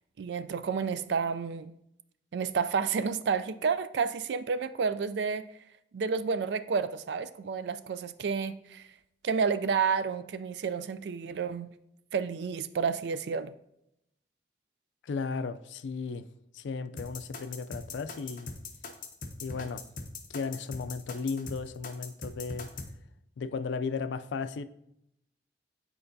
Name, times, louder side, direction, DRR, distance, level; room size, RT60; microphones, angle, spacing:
voice 1, 0.2-1.7 2.3-5.5 5.9-8.9 9.2-11.7 12.1-13.5, right 5 dB, 75° right, 0.4 m, -30 dB
voice 2, 15.0-16.2 16.5-18.5 19.4-19.8 20.3-22.7 23.4-24.6, left 4 dB, 85° left, 0.4 m, -35 dB
sound 1, 17.0-22.9, left 4 dB, 45° left, 0.7 m, -41 dB
8.7 x 4.5 x 2.7 m
head